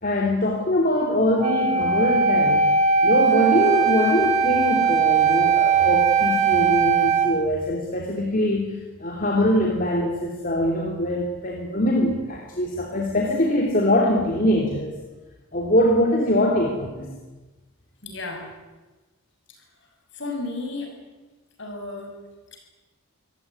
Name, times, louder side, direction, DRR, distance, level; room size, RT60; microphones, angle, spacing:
voice 1, 0.0-2.6 3.0-14.9 15.5-17.1, left 1 dB, 40° left, 0 dB, 3.1 m, -23 dB
Wind instrument woodwind instrument, 1.4-7.3, right 5 dB, 30° right, 2.5 m, -19 dB
voice 2, 18.0-18.4 20.1-20.9 21.6-22.1, left 3 dB, 55° left, 2 dB, 6.9 m, -32 dB
25.0 x 17.0 x 9.9 m, 1.2 s
head